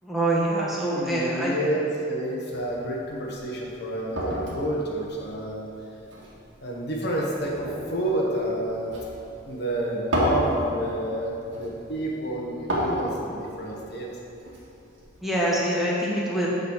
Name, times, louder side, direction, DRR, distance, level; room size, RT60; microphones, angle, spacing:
voice 1, 0.0-1.5 15.2-16.5, right 1 dB, ahead, -6 dB, 1.2 m, -25 dB
voice 2, 0.9-5.6 6.6-8.9 9.5-14.1, right 1 dB, 55° left, -2 dB, 1.1 m, -29 dB
sound 1, 2.5-15.4, equal, 70° right, 1.8 m, -34 dB
8.5 x 4.0 x 6.3 m, 2.9 s
head